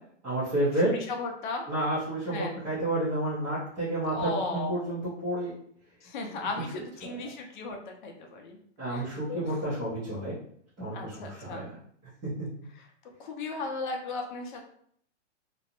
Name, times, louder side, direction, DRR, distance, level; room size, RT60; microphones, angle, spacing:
voice 1, 0.2-0.9 1.7-5.5 6.3-6.4 7.0-7.3 8.8-10.3 10.8-11.7 12.4-12.5, right 1 dB, 10° right, -12 dB, 0.5 m, -30 dB
voice 2, 0.7-1.7 2.3-2.6 4.1-4.7 6.0-8.6 8.9-9.6 10.9-11.6 12.8-12.9 13.2-14.6, left 3 dB, 45° left, 2 dB, 0.6 m, -36 dB
2.5 x 2.1 x 2.8 m, 0.64 s
hypercardioid pair, 150°, 36 cm